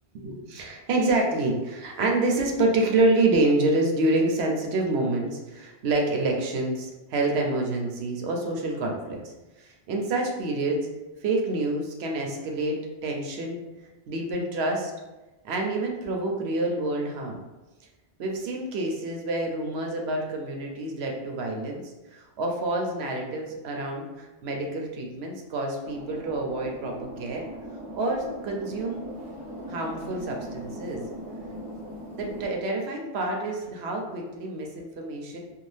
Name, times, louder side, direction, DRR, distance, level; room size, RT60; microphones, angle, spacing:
voice 1, 0.2-10.9 11.2-13.6 14.1-14.9 15.4-17.4 18.2-21.8 22.1-27.4 27.9-29.1 29.7-31.0 32.1-35.4, right 2 dB, 75° right, 1 dB, 0.8 m, -27 dB
sound 1, 25.8-32.5, equal, 35° right, 0.6 m, -39 dB
2.6 x 2.3 x 3.2 m, 1.1 s
omnidirectional pair, 1.1 m